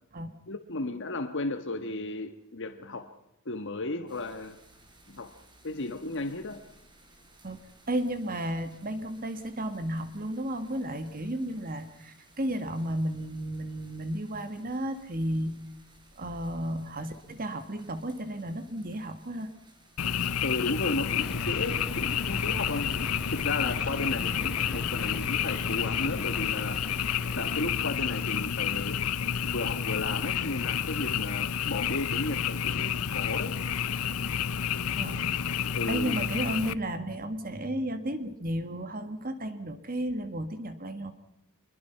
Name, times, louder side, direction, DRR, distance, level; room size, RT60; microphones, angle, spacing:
voice 1, 0.5-3.1 3.4-4.6 5.1-5.3 5.6-6.6 20.4-26.8 27.3-29.0 29.4-33.6 35.7-36.2, left 2 dB, 55° left, 7 dB, 1.4 m, -34 dB
sound 1, 4.1-20.3, right 1 dB, 20° right, 4.8 m, -59 dB
voice 2, 7.9-15.7 16.2-19.5 34.9-35.2 35.6-41.1, right 1 dB, 40° right, 9 dB, 1.8 m, -33 dB
Frog, 20.0-36.7, left 8 dB, 80° left, 0.7 m, -30 dB
sound 2, 21.2-27.6, equal, 5° right, 2.3 m, -41 dB
25.5 x 22.0 x 5.8 m, 0.84 s
head